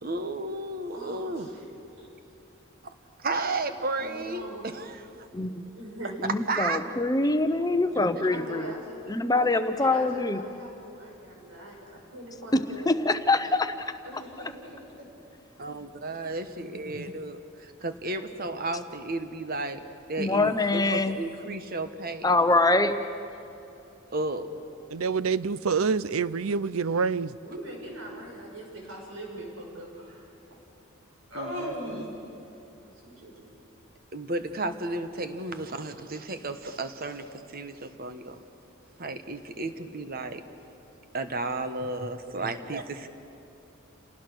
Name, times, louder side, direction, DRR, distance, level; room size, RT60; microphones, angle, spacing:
voice 1, 0.0-1.5 3.2-5.3 6.5-6.8 9.4-9.6 15.6-19.8 20.1-22.3 24.1-24.5 31.3-32.1 34.1-38.4 39.0-40.4 41.1-43.1, right 2 dB, 45° right, 1.3 m, -33 dB
voice 2, 0.9-1.7 2.0-2.1 3.9-4.8 5.8-6.3 7.9-9.1 9.8-13.0 14.0-15.1 16.1-16.2 27.4-30.6 31.3-32.1 32.8-33.4, right 1 dB, 70° right, 6.7 m, -41 dB
voice 3, 5.3-5.6 6.2-8.7 9.1-10.4 12.5-13.7 20.2-21.2 22.2-22.9, left 2 dB, 20° left, 0.9 m, -24 dB
voice 4, 24.9-27.3, right 5 dB, 90° right, 0.6 m, -26 dB
29.0 x 18.5 x 6.3 m
head